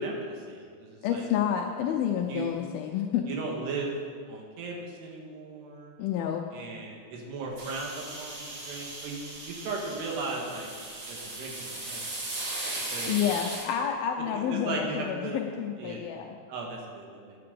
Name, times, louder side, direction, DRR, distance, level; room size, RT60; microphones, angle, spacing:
voice 1, 0.0-1.3 2.3-2.5 3.3-4.0 4.3-5.9 6.5-10.7 11.1-12.0 12.9-13.2 14.3-15.4 15.8-16.1 16.5-17.4, right 3 dB, 80° right, 0 dB, 3.6 m, -36 dB
voice 2, 1.0-3.2 6.0-6.4 13.1-16.4, left 9 dB, 80° left, 2 dB, 2.2 m, -29 dB
sound 1, 7.6-13.6, right 2 dB, 50° right, 1.6 m, -37 dB
9.5 x 8.6 x 6.8 m, 2.1 s
omnidirectional pair, 4.9 m